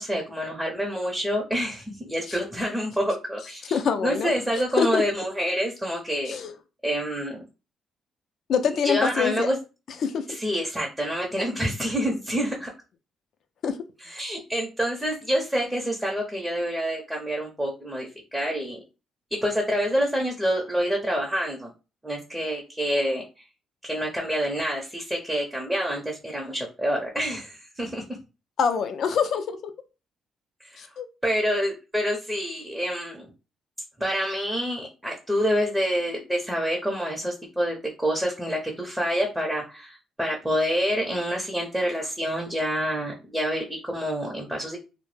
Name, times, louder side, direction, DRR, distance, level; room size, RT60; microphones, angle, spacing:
voice 1, 0.0-6.4 6.8-7.4 8.8-9.6 10.3-12.7 14.0-18.8 19.4-21.7 22.0-23.2 23.8-28.0 30.6-30.9 31.2-33.3 34.0-44.8, equal, 5° right, -1 dB, 0.6 m, -27 dB
voice 2, 3.7-4.3 4.8-5.0 6.3-6.5 8.5-9.5 10.0-10.3 13.6-13.8 28.6-29.6 30.8-31.1, left 6 dB, 65° left, 8 dB, 0.3 m, -25 dB
2.1 x 2.0 x 3.1 m, 0.30 s
cardioid pair, 90°, 0 cm